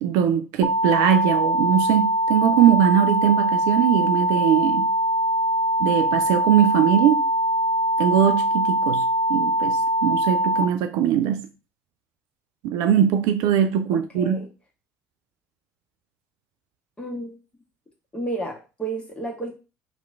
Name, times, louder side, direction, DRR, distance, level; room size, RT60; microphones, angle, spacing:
voice 1, 0.0-4.9 5.8-7.2 8.0-11.5 12.6-14.5, right 9 dB, 60° right, 0.3 m, -21 dB
sound 1, 0.6-10.6, equal, 30° left, 0.7 m, -22 dB
voice 2, 13.9-14.5 17.0-17.4 18.1-19.5, right 2 dB, 15° left, 1.3 m, -32 dB
3.0 x 2.4 x 3.3 m
figure-of-eight pair, 60°, 7 cm